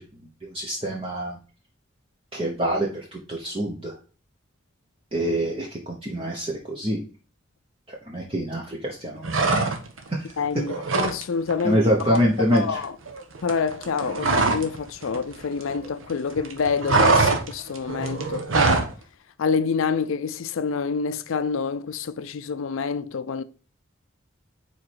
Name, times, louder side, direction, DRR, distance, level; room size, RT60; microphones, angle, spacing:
voice 1, 0.5-1.3 2.3-2.9 3.3-3.9 5.1-7.0 8.1-9.3 11.6-12.6, equal, 25° right, 0.9 m, -25 dB
sound 1, 9.2-10.1 10.4-11.2 11.5-11.7 12.0-14.8 15.0-16.1 16.4-18.9, right 3 dB, 80° right, 1.1 m, -23 dB
voice 2, 10.4-12.2 12.5-13.0 13.4-18.9 19.4-23.4, left 5 dB, 80° left, 0.5 m, -27 dB
4.8 x 4.2 x 4.6 m
head